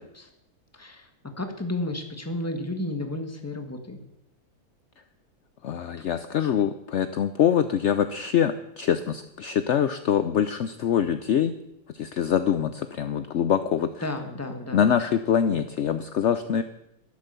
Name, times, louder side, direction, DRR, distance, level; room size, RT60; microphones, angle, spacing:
voice 1, 0.7-1.1 1.4-4.0 14.0-14.9, left 1 dB, 10° left, 5 dB, 1.5 m, -32 dB
voice 2, 5.6-11.5 11.9-14.0 14.7-16.6, left 8 dB, 60° left, 10 dB, 0.9 m, -24 dB
12.0 x 12.0 x 6.8 m, 0.82 s
omnidirectional pair, 1.5 m